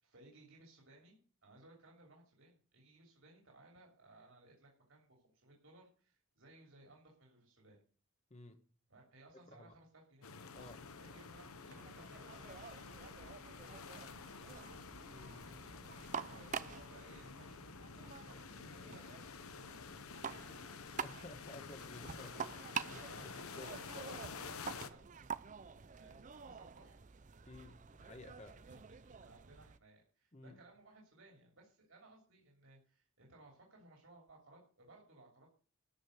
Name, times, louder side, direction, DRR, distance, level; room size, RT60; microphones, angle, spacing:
voice 1, 0.0-7.8 8.9-10.4 11.0-13.5 14.0-14.8 15.3-20.8 21.6-21.7 22.9-27.0 28.4-35.5, right 2 dB, 65° right, -1 dB, 3.1 m, -62 dB
voice 2, 8.3-8.6 9.5-9.7 10.5-10.8 15.1-15.4 21.0-23.1 23.4-23.8 27.5-28.6 30.3-30.6, left 2 dB, 30° left, 7 dB, 1.3 m, -54 dB
sound 1, 10.2-24.9, left 5 dB, 85° left, 0.9 m, -50 dB
sound 2, 10.5-29.8, right 6 dB, 35° right, 0.5 m, -48 dB
12.5 x 5.3 x 7.9 m, 0.40 s
head